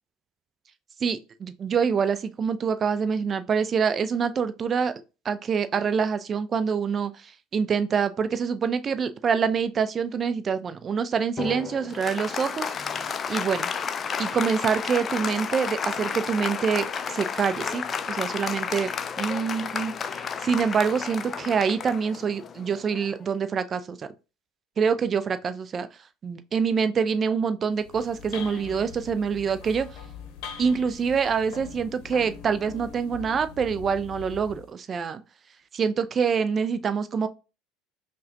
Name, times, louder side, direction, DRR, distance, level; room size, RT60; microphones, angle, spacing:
voice 1, 1.0-4.9 5.2-13.7 14.2-24.1 24.8-25.9 26.2-29.9 30.6-35.2 35.7-37.3, right 6 dB, 30° right, 0.4 m, -26 dB
Applause, 11.4-23.2, left 6 dB, 30° left, 0.3 m, -32 dB
sound 1, 27.7-34.7, left 7 dB, 50° left, 0.8 m, -42 dB
5.5 x 2.2 x 2.5 m
figure-of-eight pair, 65°, 0 cm